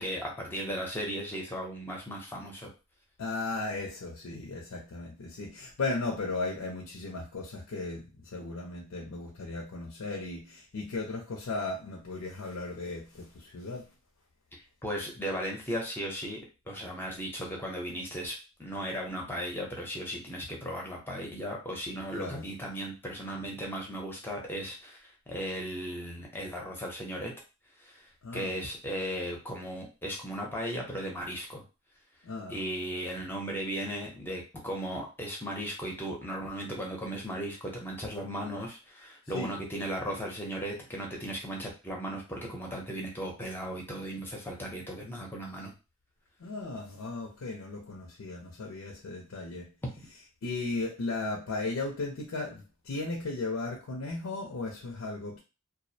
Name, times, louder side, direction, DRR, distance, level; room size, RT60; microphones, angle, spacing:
voice 1, 0.0-2.7 14.5-16.4 16.7-27.3 27.8-31.6 32.5-45.7, equal, 10° left, -1 dB, 0.6 m, -36 dB
voice 2, 3.2-13.9 22.2-22.4 28.2-28.5 32.2-32.6 39.3-39.5 46.4-49.7 50.4-55.4, left 3 dB, 80° left, 0 dB, 0.5 m, -36 dB
2.3 x 2.0 x 2.6 m, 0.30 s
head